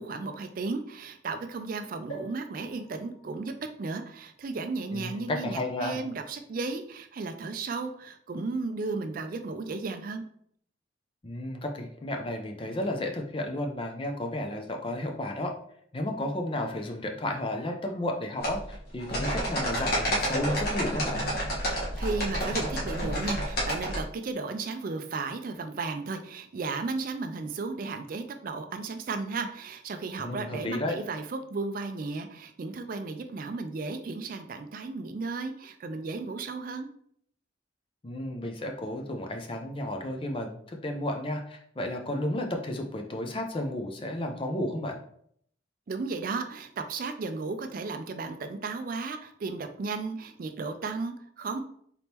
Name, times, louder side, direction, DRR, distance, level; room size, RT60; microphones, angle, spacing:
voice 1, 0.0-10.2 22.0-36.9 45.9-51.6, right 3 dB, 45° right, 8 dB, 0.4 m, -34 dB
sound 1, 2.1-5.8 6.4-6.5 6.7-6.8, right 2 dB, 90° left, 1.6 m, -49 dB
voice 2, 4.9-6.0 11.2-15.5 15.9-21.2 30.2-31.0 38.0-45.0, left 1 dB, 30° left, 3 dB, 0.5 m, -32 dB
sound 2, 18.4-24.0, equal, 55° left, 1.4 m, -30 dB
4.1 x 3.5 x 2.9 m, 0.65 s
head